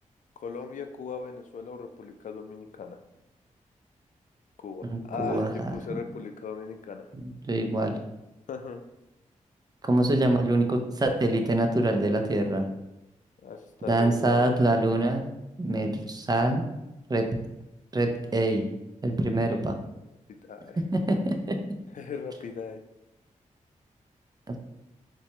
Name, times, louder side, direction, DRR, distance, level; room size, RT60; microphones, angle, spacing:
voice 1, 0.4-3.0 4.6-7.1 8.5-8.8 13.4-14.5 20.3-20.8 21.9-22.8, left 5 dB, 65° left, 6 dB, 0.4 m, -38 dB
voice 2, 4.8-6.0 7.2-8.0 9.9-12.6 13.9-15.3 15.6-16.6 17.1-17.2 17.9-18.7 19.0-19.7 20.8-21.6 24.5-24.6, right 1 dB, 30° right, 4 dB, 0.6 m, -25 dB
4.0 x 2.2 x 2.8 m, 0.92 s
cardioid pair, 50°, 14 cm